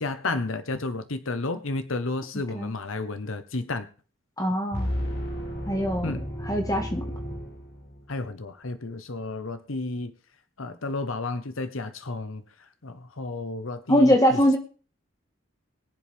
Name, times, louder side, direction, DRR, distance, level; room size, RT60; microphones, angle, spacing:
voice 1, 0.0-3.9 6.0-6.2 8.1-10.1 10.6-12.4 12.8-14.6, left 3 dB, 85° left, 10 dB, 1.0 m, -32 dB
voice 2, 4.4-4.9 5.7-6.2 6.4-7.0 13.9-14.6, equal, 15° left, 4 dB, 1.5 m, -22 dB
sound 1, 4.7-8.2, equal, 55° left, 3.2 m, -33 dB
22.5 x 7.6 x 3.5 m, 0.38 s
head